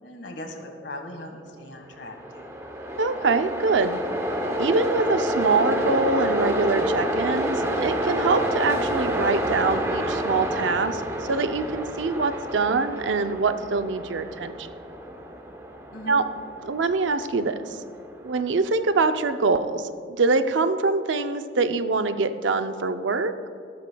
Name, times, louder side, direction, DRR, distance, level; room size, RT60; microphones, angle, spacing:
voice 1, 0.0-2.5 15.9-16.2, left 1 dB, 75° left, 3 dB, 1.5 m, -39 dB
Train, 1.9-19.1, equal, 15° right, 0.7 m, -29 dB
voice 2, 3.0-4.0 4.6-14.7 16.1-16.2 16.6-17.8 18.2-23.3, right 3 dB, 80° right, 9 dB, 0.5 m, -24 dB
14.0 x 12.5 x 2.3 m, 2.4 s
head